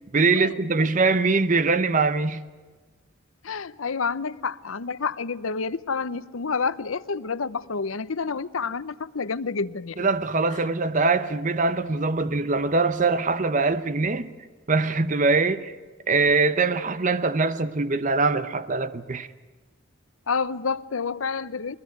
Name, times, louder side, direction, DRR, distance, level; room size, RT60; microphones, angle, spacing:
voice 1, 0.1-2.4 10.0-14.3 14.7-15.7 16.1-19.3, right 3 dB, 40° right, 0.7 m, -22 dB
voice 2, 3.4-10.1 20.3-21.8, left 5 dB, 80° left, 0.8 m, -29 dB
22.0 x 20.0 x 9.4 m
head